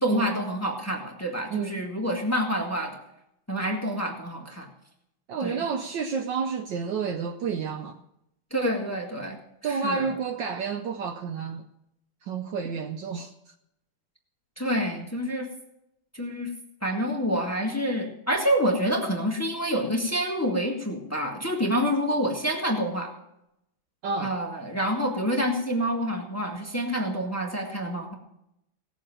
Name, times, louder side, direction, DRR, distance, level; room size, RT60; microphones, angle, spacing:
voice 1, 0.0-3.0 3.5-4.7 5.4-5.6 8.5-10.1 14.6-15.5 16.1-16.5 16.8-23.1 24.2-28.1, equal, 10° left, 1.3 m, -27 dB
voice 2, 1.5-1.8 5.3-8.0 9.6-11.7 12.2-13.5 24.0-24.4, right 5 dB, 70° right, 1.2 m, -30 dB
17.5 x 7.2 x 7.6 m
omnidirectional pair, 2.4 m